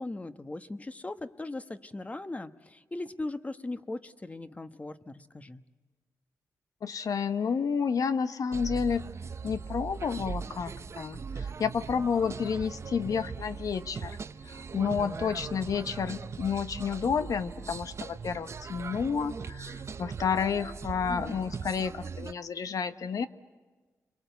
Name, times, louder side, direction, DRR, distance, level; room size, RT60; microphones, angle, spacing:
voice 1, 0.0-5.6 21.1-21.5, left 2 dB, 20° left, 11 dB, 1.1 m, -39 dB
voice 2, 6.8-9.0 9.4-14.2 14.4-23.3, left 6 dB, 65° left, 11 dB, 1.1 m, -30 dB
sound 1, 8.5-22.3, right 5 dB, 45° right, 0.8 m, -39 dB
29.5 x 22.5 x 8.2 m, 1.3 s
cardioid pair, 90°, 6 cm